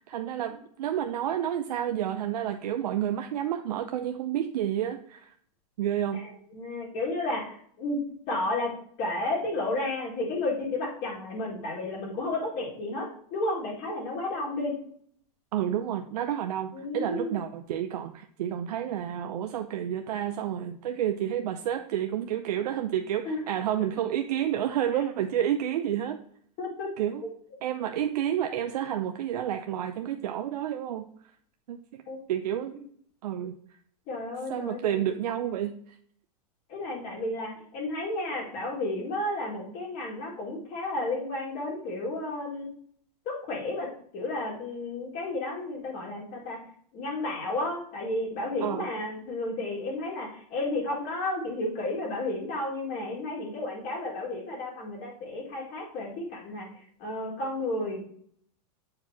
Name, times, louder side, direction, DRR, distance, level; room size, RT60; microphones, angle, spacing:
voice 1, 0.1-5.3 5.8-6.2 15.5-26.2 27.0-27.2 27.6-31.1 31.7-32.0 32.3-32.8 33.2-33.5 34.5-35.9 48.6-48.9, right 10 dB, 85° right, 6 dB, 0.6 m, -30 dB
voice 2, 6.1-14.8 16.7-17.3 23.2-23.4 23.8-23.9 26.6-26.9 32.1-32.2 34.1-35.1 36.7-42.7 43.3-46.6 46.9-58.0, left 2 dB, 40° left, -3 dB, 2.1 m, -32 dB
7.7 x 4.8 x 2.8 m, 0.63 s
supercardioid pair, 150°, 20 cm